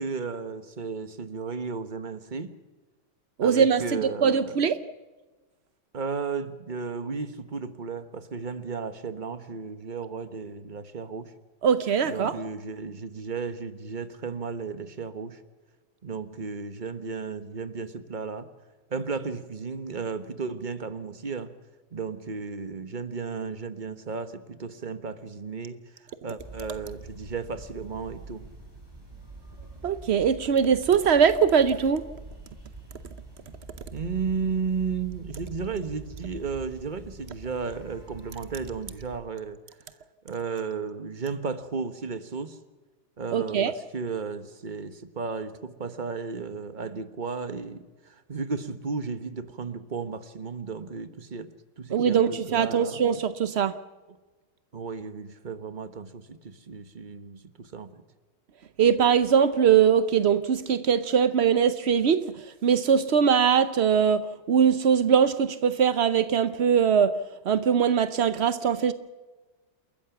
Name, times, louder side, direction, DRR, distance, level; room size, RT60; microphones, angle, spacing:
voice 1, 0.0-2.5 3.4-4.5 5.9-11.3 12.0-15.4 16.0-18.5 18.9-21.5 21.9-25.8 26.2-28.5 33.9-39.6 40.2-42.6 43.2-51.5 51.8-53.0 54.7-58.0, right 5 dB, 30° right, 11 dB, 1.1 m, -34 dB
voice 2, 3.4-4.8 11.6-12.4 29.8-32.0 43.3-43.7 51.9-53.8 58.8-67.2 67.4-68.9, right 7 dB, 75° right, 13 dB, 0.6 m, -22 dB
sound 1, 26.4-39.2, right 2 dB, 10° right, 5.7 m, -45 dB
29.0 x 14.0 x 7.1 m, 1.3 s
omnidirectional pair, 2.2 m